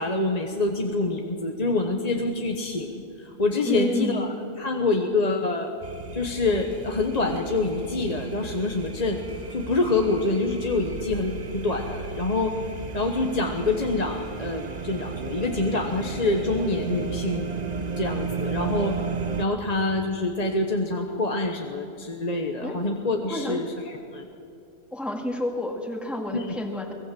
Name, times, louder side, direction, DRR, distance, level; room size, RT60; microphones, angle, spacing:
voice 1, 0.0-5.7 6.1-9.2 9.5-12.6 12.9-17.5 18.0-19.0 19.4-24.2 26.3-26.6, left 2 dB, 30° left, 3 dB, 1.2 m, -26 dB
voice 2, 3.6-4.2 22.6-22.8 23.3-23.6 24.9-26.9, left 1 dB, ahead, 1 dB, 2.1 m, -29 dB
sound 1, 5.8-19.4, right 5 dB, 35° right, 1.0 m, -34 dB
sound 2, 6.5-10.8, left 1 dB, 55° left, 4.0 m, -49 dB
24.0 x 18.0 x 7.7 m, 2.8 s
omnidirectional pair, 1.4 m